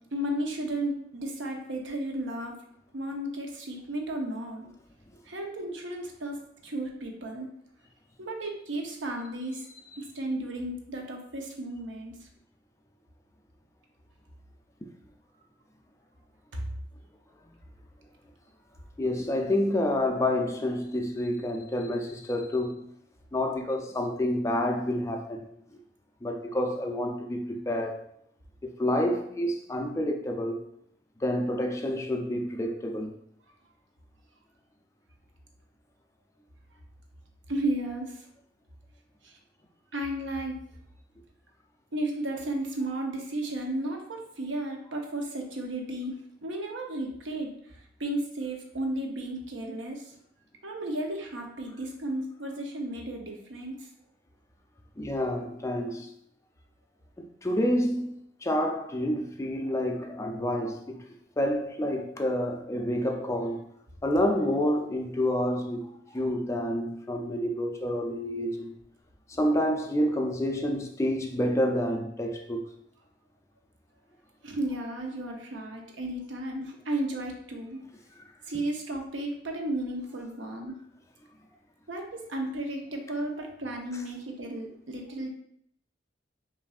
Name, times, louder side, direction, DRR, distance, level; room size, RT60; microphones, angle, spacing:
voice 1, 0.1-2.5 2.9-4.7 5.3-6.4 6.6-7.5 8.2-9.6 10.0-12.3 16.5-16.6 37.5-38.2 39.2-39.4 39.9-40.6 41.9-47.5 48.0-50.1 50.6-53.9 74.4-77.8 78.5-80.7 81.9-85.3, right 1 dB, 85° right, 0.7 m, -34 dB
voice 2, 19.0-22.9 23.3-25.8 26.2-28.1 28.6-30.6 31.2-33.1 55.0-56.1 57.2-58.1 58.4-61.0 61.4-63.7 64.0-68.7 69.3-72.6, left 1 dB, 15° left, 0.4 m, -28 dB
5.6 x 2.6 x 2.4 m
head